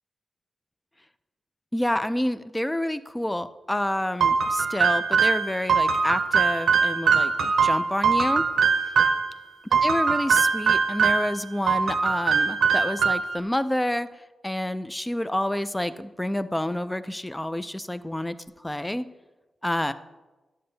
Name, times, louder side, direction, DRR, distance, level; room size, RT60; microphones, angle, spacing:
voice 1, 1.7-8.4 9.8-14.1 14.4-18.4 18.6-19.1 19.6-19.9, left 1 dB, 10° left, 12 dB, 0.4 m, -28 dB
sound 1, 4.2-9.3 9.7-11.3 11.7-13.4, right 5 dB, 90° right, 0.7 m, -22 dB
11.5 x 7.7 x 2.7 m, 1.1 s
wide cardioid pair, 100°, 0 cm